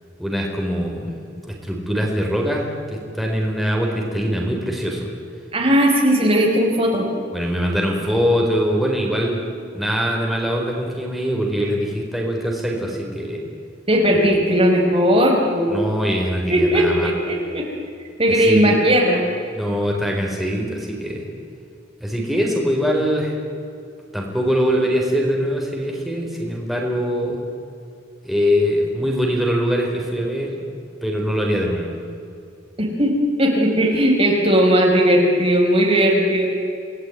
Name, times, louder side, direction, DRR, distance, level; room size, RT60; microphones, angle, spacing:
voice 1, 0.2-1.1 1.5-5.1 7.3-9.4 9.7-13.4 15.7-17.1 18.3-18.8 19.5-21.2 22.0-23.3 24.1-27.4 28.2-30.6 31.0-31.9, equal, ahead, -2 dB, 4.6 m, -22 dB
voice 2, 5.5-7.1 13.9-15.7 16.5-17.7 18.2-19.2 32.8-36.5, equal, 30° right, 0 dB, 4.6 m, -17 dB
29.0 x 19.5 x 9.5 m, 2.5 s
head